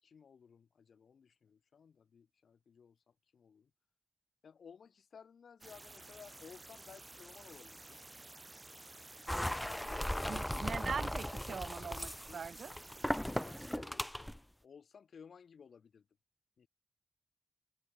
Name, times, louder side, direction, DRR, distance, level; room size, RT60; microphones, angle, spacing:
voice 1, 0.0-3.7 4.4-8.0 9.2-10.9 12.3-16.1 16.6-16.7, left 6 dB, 85° left, 4.0 m, -58 dB
sound 1, 5.6-13.8, right 2 dB, 20° right, 2.2 m, -53 dB
sound 2, 9.3-14.4, equal, 5° left, 0.6 m, -38 dB
voice 2, 10.3-12.7, right 6 dB, 70° right, 0.7 m, -41 dB
wide cardioid pair, 150°, 0 cm